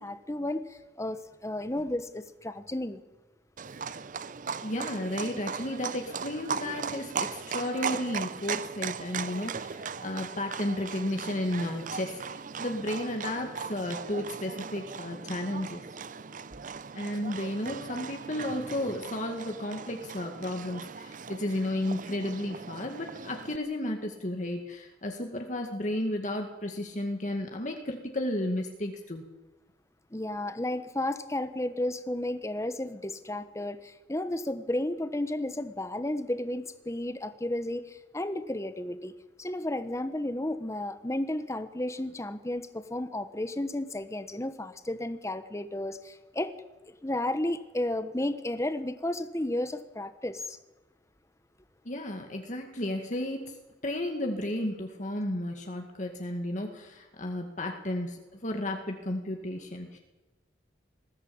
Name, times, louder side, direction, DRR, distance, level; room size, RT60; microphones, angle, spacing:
voice 1, 0.0-3.0 30.1-46.5 47.0-50.6, left 1 dB, 15° left, 10 dB, 1.1 m, -33 dB
Livestock farm animals working animals, 3.6-23.6, right 6 dB, 45° right, 0.6 m, -38 dB
voice 2, 4.6-15.8 16.9-29.3 51.9-53.5 53.8-60.0, left 1 dB, 45° left, 3 dB, 2.0 m, -33 dB
20.0 x 15.0 x 8.7 m, 1.1 s
head